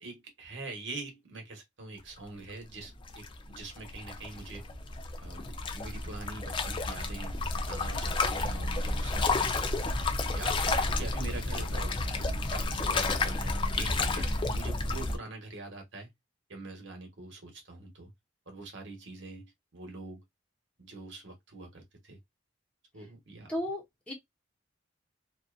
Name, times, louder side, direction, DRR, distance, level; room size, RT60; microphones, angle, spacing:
voice 1, 0.0-4.6 5.2-7.4 7.7-9.6 10.3-12.2 12.5-16.1 16.5-18.1 18.5-20.2 20.8-22.2 22.9-23.5, right 3 dB, 65° right, 1.0 m, -44 dB
sound 1, 2.8-15.2, left 3 dB, 25° left, 0.3 m, -31 dB
voice 2, 23.5-24.1, left 1 dB, 5° left, 0.8 m, -34 dB
2.6 x 2.4 x 2.2 m
head